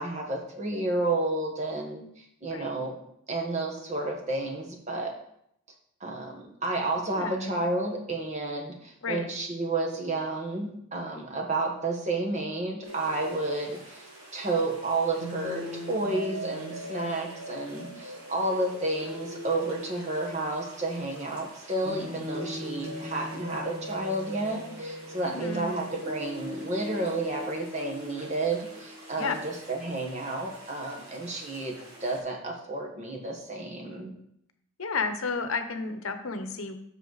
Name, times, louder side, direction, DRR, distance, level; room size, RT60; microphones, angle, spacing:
voice 1, 0.0-3.0 3.3-5.1 6.0-14.1 14.3-34.1, right 2 dB, 35° right, 1 dB, 1.3 m, -31 dB
voice 2, 7.1-7.5 9.0-9.3 25.2-25.7 29.2-29.4 34.8-36.8, left 4 dB, 80° left, 8 dB, 0.9 m, -32 dB
sound 1, 12.8-32.2, equal, 85° right, 2.9 m, -41 dB
7.9 x 6.4 x 4.0 m, 0.73 s
head